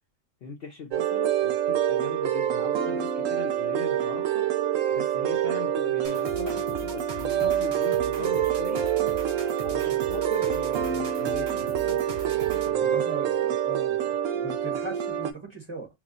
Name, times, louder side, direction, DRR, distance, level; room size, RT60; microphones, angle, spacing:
voice 1, 0.4-4.5 4.9-9.0 9.6-13.4, left 6 dB, 55° left, 0.8 m, -40 dB
sound 1, 0.9-15.3, right 10 dB, 80° right, 1.0 m, -26 dB
sound 2, 6.0-12.8, right 6 dB, 45° right, 0.5 m, -40 dB
voice 2, 12.6-15.9, right 3 dB, 25° right, 1.1 m, -39 dB
3.0 x 2.2 x 3.7 m
omnidirectional pair, 1.3 m